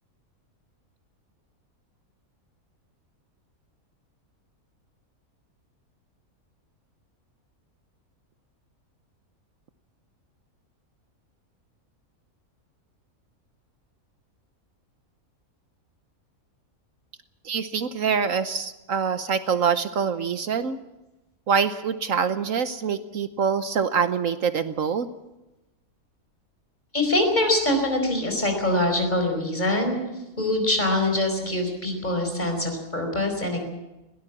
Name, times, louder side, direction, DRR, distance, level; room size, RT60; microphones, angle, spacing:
voice 1, 17.4-20.8 21.5-25.1, right 6 dB, 65° right, 11 dB, 1.2 m, -25 dB
voice 2, 26.9-30.0 30.4-33.6, left 1 dB, 30° left, 4 dB, 5.0 m, -24 dB
21.0 x 18.0 x 7.3 m, 1.0 s
omnidirectional pair, 1.5 m